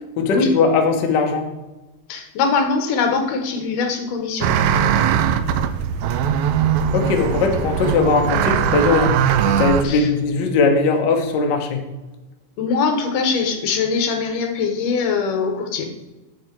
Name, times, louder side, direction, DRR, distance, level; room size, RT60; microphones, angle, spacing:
voice 1, 0.2-1.5 6.9-11.8, left 4 dB, 60° left, 3 dB, 1.1 m, -19 dB
voice 2, 2.1-4.5 9.8-10.1 12.6-15.9, left 5 dB, 85° left, 5 dB, 2.8 m, -22 dB
sound 1, 4.4-9.8, right 8 dB, 80° right, 1.7 m, -20 dB
8.0 x 7.4 x 4.6 m, 1.1 s
omnidirectional pair, 3.7 m